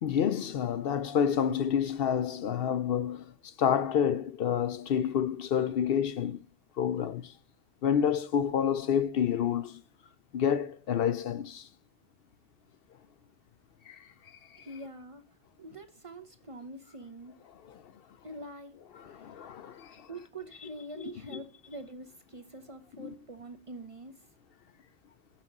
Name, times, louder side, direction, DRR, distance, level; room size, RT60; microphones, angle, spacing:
voice 1, 0.0-3.3 3.6-6.4 6.8-7.3 7.8-9.8 10.3-11.7 13.9-14.4 17.7-17.8 19.0-20.1 21.3-21.4 23.0-23.1, left 8 dB, 65° left, 0.7 m, -29 dB
voice 2, 14.6-15.2 15.6-17.4 18.2-18.8 19.1-19.3 19.9-24.2, right 2 dB, 35° right, 0.7 m, -45 dB
5.9 x 5.8 x 7.1 m
omnidirectional pair, 1.1 m